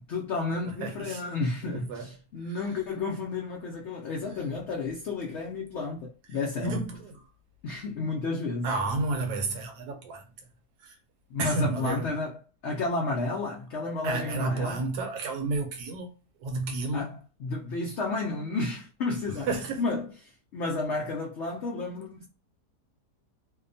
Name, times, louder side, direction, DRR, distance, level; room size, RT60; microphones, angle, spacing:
voice 1, 0.1-6.8 7.6-8.7 11.3-14.8 16.9-19.5 19.8-22.3, left 3 dB, 85° left, 0.6 m, -32 dB
voice 2, 0.6-1.2 1.7-2.0 6.6-7.1 8.6-10.2 10.8-11.0 11.4-12.1 14.0-16.1 16.4-17.1 19.4-19.8, right 3 dB, 75° right, 1.1 m, -31 dB
2.7 x 2.1 x 2.6 m
omnidirectional pair, 1.8 m